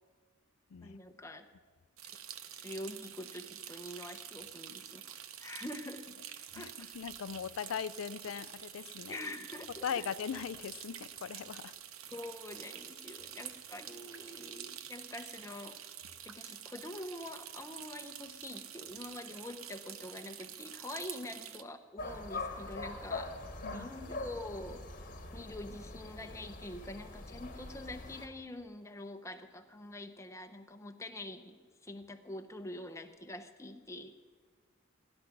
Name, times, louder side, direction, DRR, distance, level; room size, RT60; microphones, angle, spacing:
voice 1, 0.8-1.5 2.0-2.1 2.5-6.1 6.5-6.9 9.1-10.1 12.1-15.8 16.3-23.3 23.7-24.8 25.3-31.6 31.8-34.1, left 1 dB, 15° left, 6 dB, 0.8 m, -45 dB
sound 1, 2.0-21.6, right 10 dB, 80° right, 0.8 m, -48 dB
voice 2, 6.6-9.2 9.8-11.7 23.6-23.9, left 7 dB, 75° left, 17 dB, 0.4 m, -39 dB
sound 2, 22.0-28.3, left 2 dB, 40° left, 1.4 m, -43 dB
16.0 x 11.0 x 6.0 m, 1.5 s
head